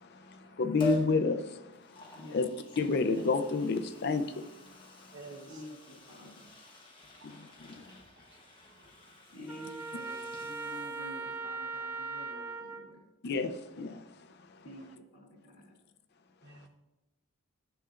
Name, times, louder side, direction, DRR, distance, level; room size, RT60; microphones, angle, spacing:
voice 1, 0.0-2.5 2.8-4.5 7.2-7.9 13.2-14.0, left 3 dB, 50° left, 0.4 m, -30 dB
Liquid, 0.8-1.1 1.7-11.4 11.7-11.8, left 2 dB, 25° left, 1.1 m, -45 dB
voice 2, 2.1-2.5 5.5-6.5 9.3-13.0 14.6-14.9 15.1-15.7, left 1 dB, 75° left, 2.3 m, -49 dB
voice 3, 5.1-5.6 7.2-7.3 8.2-8.4 8.6-8.9 16.4-16.7, right 3 dB, 55° right, 0.9 m, -50 dB
Trumpet, 9.5-12.9, right 4 dB, 10° right, 0.5 m, -39 dB
10.0 x 6.9 x 2.4 m
head